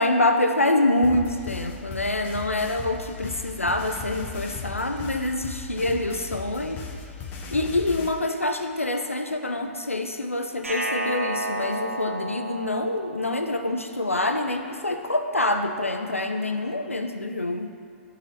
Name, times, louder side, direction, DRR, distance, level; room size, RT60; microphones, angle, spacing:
voice 1, 0.0-6.8 7.5-17.7, left 2 dB, 90° left, 6 dB, 0.5 m, -26 dB
sound 1, 1.0-8.1, left 5 dB, 25° left, 0.7 m, -37 dB
sound 2, 10.6-13.7, right 1 dB, 80° right, 0.7 m, -31 dB
11.5 x 4.0 x 2.8 m, 2.3 s
figure-of-eight pair, 110°, 7 cm